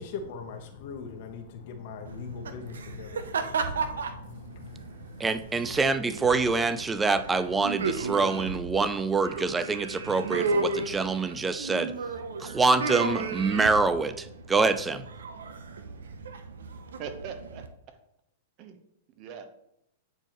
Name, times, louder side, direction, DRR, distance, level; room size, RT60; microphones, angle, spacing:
voice 1, 0.0-5.7, left 5 dB, 55° left, 4 dB, 0.9 m, -42 dB
sound 1, 2.0-17.7, right 4 dB, 90° right, 0.6 m, -34 dB
voice 2, 5.2-11.9 12.4-15.0, right 4 dB, 10° right, 12 dB, 0.3 m, -25 dB
voice 3, 17.0-18.0 18.6-18.8 19.1-19.5, right 7 dB, 40° right, 8 dB, 0.9 m, -41 dB
8.7 x 4.4 x 3.0 m, 0.80 s
hypercardioid pair, 130°, 0 cm